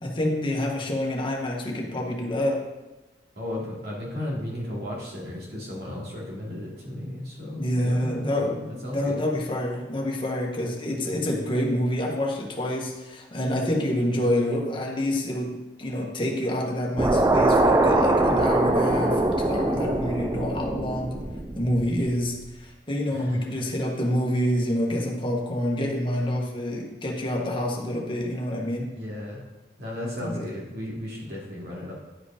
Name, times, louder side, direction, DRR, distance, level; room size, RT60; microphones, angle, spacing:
voice 1, 0.0-2.6 7.6-8.6 8.9-21.2 21.6-29.0 30.2-30.5, left 1 dB, 30° left, -1 dB, 1.4 m, -27 dB
voice 2, 3.4-9.2 10.8-11.2 23.1-23.5 28.8-29.4 29.8-31.9, left 1 dB, 65° right, -4 dB, 2.7 m, -35 dB
sound 1, 17.0-22.3, right 2 dB, 20° right, 0.5 m, -23 dB
10.5 x 5.1 x 5.0 m, 1.1 s
head